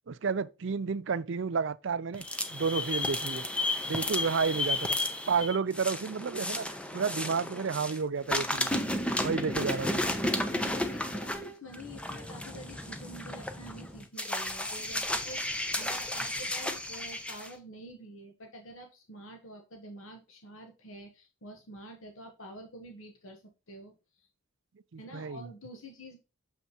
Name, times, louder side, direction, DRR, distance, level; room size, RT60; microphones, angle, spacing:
voice 1, 0.1-2.3 2.5-3.5 3.8-5.0 5.3-6.7 6.9-8.7 9.2-10.0 24.9-25.4, right 5 dB, 60° right, 0.4 m, -31 dB
sound 1, 2.1-8.0 8.3-17.5, left 1 dB, 5° left, 0.7 m, -33 dB
voice 2, 3.9-4.3 5.3-5.6 10.5-24.3 25.0-26.2, equal, 70° left, 1.2 m, -48 dB
7.4 x 5.6 x 2.9 m
head